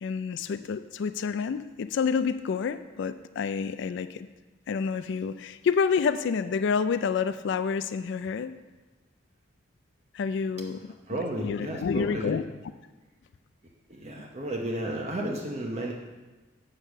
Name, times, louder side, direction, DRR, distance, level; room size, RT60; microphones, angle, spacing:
voice 1, 0.0-4.3 4.7-8.6 10.1-10.8 11.1-11.2 11.4-12.4, left 6 dB, 65° left, 12 dB, 0.3 m, -28 dB
voice 2, 11.1-12.4 13.9-15.9, right 1 dB, 35° right, -1 dB, 0.9 m, -33 dB
8.7 x 4.9 x 6.4 m, 1.2 s
head